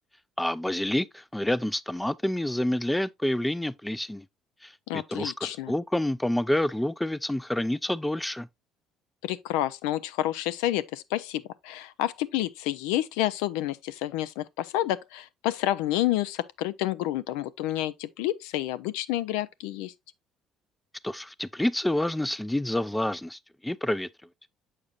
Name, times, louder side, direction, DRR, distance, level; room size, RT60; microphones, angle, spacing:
voice 1, 0.4-4.3 4.6-8.5 21.0-24.1, left 1 dB, 5° left, 0.3 m, -28 dB
voice 2, 4.9-5.7 9.2-19.9, left 14 dB, 90° left, 0.4 m, -29 dB
7.2 x 6.5 x 2.4 m
supercardioid pair, 85°, 0 cm